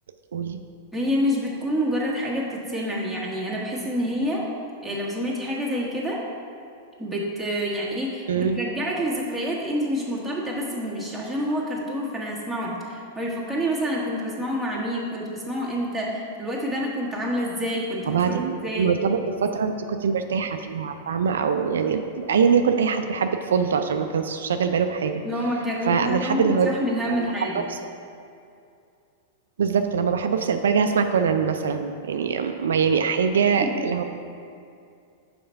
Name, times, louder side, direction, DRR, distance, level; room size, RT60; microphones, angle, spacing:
voice 1, 0.9-4.5 4.8-6.2 7.0-19.0 25.2-27.7 33.6-33.9, equal, ahead, -6 dB, 1.5 m, -28 dB
voice 2, 8.3-8.6 18.1-25.2 25.9-26.7 27.1-27.8 29.6-34.0, right 6 dB, 85° right, 7 dB, 0.4 m, -23 dB
5.5 x 4.3 x 5.7 m, 2.4 s
hypercardioid pair, 115°, 0 cm